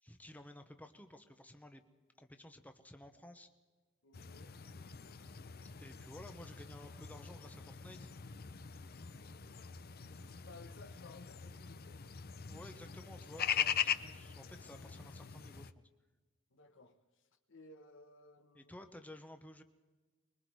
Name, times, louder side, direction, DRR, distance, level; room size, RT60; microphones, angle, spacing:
voice 1, 0.0-1.8 2.2-3.5 5.8-8.1 12.5-15.8 18.5-19.6, left 1 dB, 10° left, 1.0 m, -54 dB
voice 2, 4.0-4.6 9.2-9.5 10.1-12.0 16.5-17.0 17.5-18.7, left 3 dB, 65° left, 1.4 m, -57 dB
sound 1, 4.1-15.7, left 8 dB, 50° left, 0.6 m, -42 dB
24.5 x 22.0 x 4.8 m
head